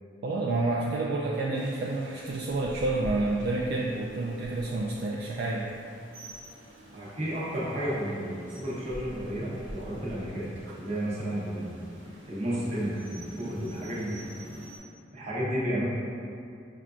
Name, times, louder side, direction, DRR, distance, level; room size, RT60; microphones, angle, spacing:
voice 1, 0.2-5.6, right 2 dB, 55° right, -3 dB, 0.3 m, -29 dB
Rain, 1.5-14.8, equal, 80° right, 0.9 m, -46 dB
voice 2, 6.9-10.5 10.8-11.9 12.3-14.2 15.1-15.8, equal, 35° right, -7 dB, 0.9 m, -32 dB
5.6 x 2.4 x 2.3 m, 2.6 s
head